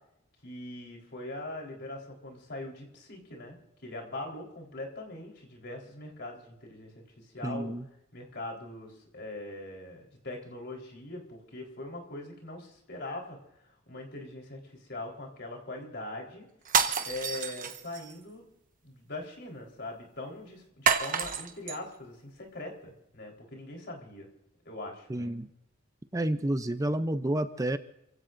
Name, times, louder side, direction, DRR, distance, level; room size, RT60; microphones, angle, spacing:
voice 1, 0.4-3.6 3.8-7.7 8.1-13.4 13.6-16.5 17.0-18.4 18.8-24.3 24.7-25.3, left 2 dB, 55° left, 0 dB, 4.0 m, -41 dB
voice 2, 7.4-7.8 25.1-25.5 26.1-27.8, right 1 dB, 15° right, 10 dB, 0.5 m, -30 dB
sound 1, 16.6-18.1 20.9-21.8, right 6 dB, 45° right, 1.2 m, -28 dB
28.5 x 16.0 x 2.6 m, 0.85 s
head